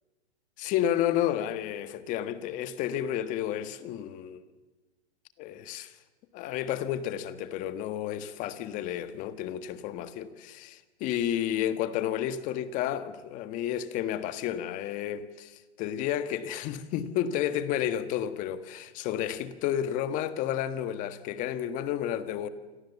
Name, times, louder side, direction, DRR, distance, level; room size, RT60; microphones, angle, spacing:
voice 1, 0.6-4.5 5.4-5.9 6.3-22.5, left 11 dB, 25° left, 1.5 m, -31 dB
28.0 x 26.5 x 7.1 m
hypercardioid pair, 150°, 33 cm